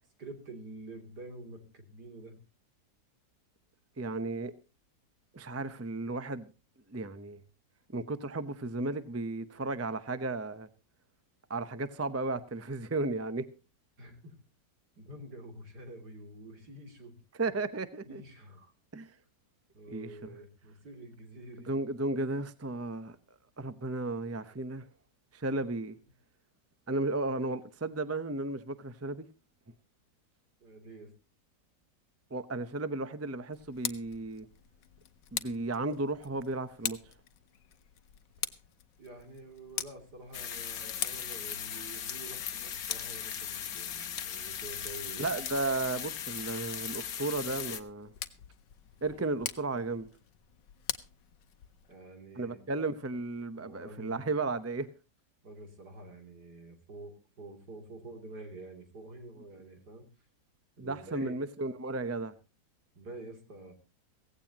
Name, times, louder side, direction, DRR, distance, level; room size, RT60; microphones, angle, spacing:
voice 1, 0.2-2.4 14.0-14.4 15.0-17.2 18.1-18.7 19.7-21.7 30.6-31.1 39.0-45.3 51.9-52.6 53.5-54.3 55.4-60.1 60.8-61.3 62.9-63.7, right 2 dB, 65° right, 3.6 m, -48 dB
voice 2, 4.0-4.5 5.3-6.5 6.9-7.4 7.9-10.7 11.5-13.5 17.4-18.2 18.9-19.1 19.9-20.3 21.6-23.2 23.6-24.8 25.3-26.0 26.9-29.3 32.3-34.5 35.3-37.1 45.2-48.1 49.0-50.1 52.4-54.9 60.8-62.3, right 2 dB, 20° right, 0.4 m, -34 dB
Tick, 33.5-52.0, left 10 dB, 90° left, 1.5 m, -44 dB
sound 1, 40.3-47.8, left 9 dB, 60° left, 1.4 m, -38 dB
16.5 x 16.0 x 2.9 m
omnidirectional pair, 1.9 m